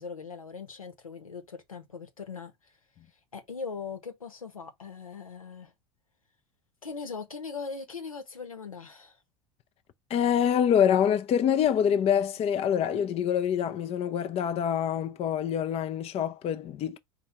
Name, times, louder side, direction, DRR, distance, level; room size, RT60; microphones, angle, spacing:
voice 1, 0.0-2.7 3.3-5.7 6.8-9.2, left 5 dB, 90° left, 1.0 m, -40 dB
voice 2, 10.1-17.0, left 9 dB, 35° left, 0.6 m, -25 dB
4.4 x 2.3 x 4.3 m
figure-of-eight pair, 75°, 17 cm